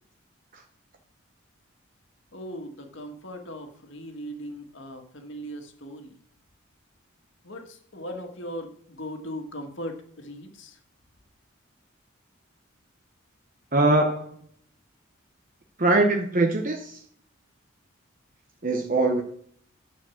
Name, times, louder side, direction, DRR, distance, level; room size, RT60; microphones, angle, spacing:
voice 1, 2.3-6.2 7.4-10.8, equal, 65° left, 4 dB, 1.9 m, -39 dB
voice 2, 13.7-14.3 15.8-17.0 18.6-19.2, right 2 dB, 40° right, 3 dB, 0.9 m, -22 dB
10.5 x 4.9 x 7.1 m, 0.62 s
head